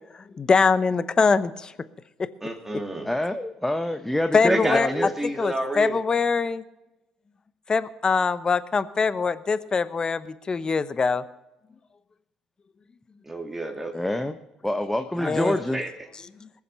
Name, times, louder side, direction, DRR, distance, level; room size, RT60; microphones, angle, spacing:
voice 1, 0.4-1.7 4.3-4.9 5.4-6.6 7.7-11.2 15.2-15.5, left 5 dB, 35° left, 15 dB, 0.9 m, -23 dB
voice 2, 2.4-3.1 4.5-6.0 13.2-13.9 15.2-15.9, right 1 dB, 10° right, 3 dB, 2.8 m, -29 dB
voice 3, 3.0-5.1 13.9-14.4 14.6-15.8, left 1 dB, 10° left, 7 dB, 0.9 m, -26 dB
20.5 x 7.3 x 5.6 m, 0.95 s
hypercardioid pair, 60°, 2 cm